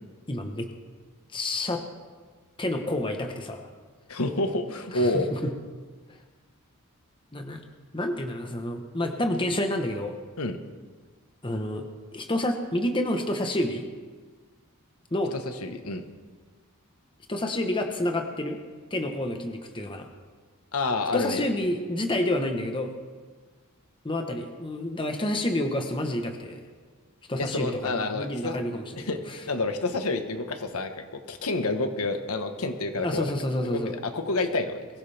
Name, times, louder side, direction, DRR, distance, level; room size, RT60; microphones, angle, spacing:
voice 1, 0.3-0.7 1.3-1.8 2.6-3.7 4.9-5.5 7.3-7.6 7.9-10.2 11.4-11.8 12.1-13.8 15.1-15.3 17.3-18.6 18.9-20.1 21.1-22.9 24.0-26.6 27.3-29.4 33.0-33.9, left 1 dB, 20° left, 4 dB, 1.1 m, -29 dB
voice 2, 4.1-5.3 10.4-10.6 15.3-16.0 20.7-21.4 27.4-28.6 29.0-33.3 33.6-34.9, left 2 dB, 75° left, 6 dB, 1.3 m, -29 dB
22.5 x 15.5 x 3.5 m, 1.4 s
head